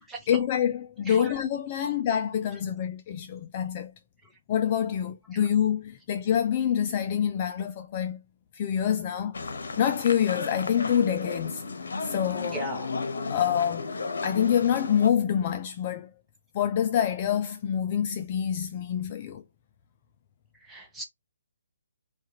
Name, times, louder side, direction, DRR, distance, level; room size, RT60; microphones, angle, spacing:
voice 1, 0.3-3.9 4.5-8.2 8.5-9.4 9.8-11.6 12.0-12.6 13.3-13.9 14.2-16.1 16.5-19.4, left 9 dB, 25° left, 0.3 m, -26 dB
sound 1, 9.3-15.1, left 4 dB, 75° left, 0.9 m, -34 dB
voice 2, 12.5-12.9 20.7-21.0, right 1 dB, 5° right, 0.7 m, -37 dB
4.5 x 2.4 x 2.8 m
hypercardioid pair, 170°, 0 cm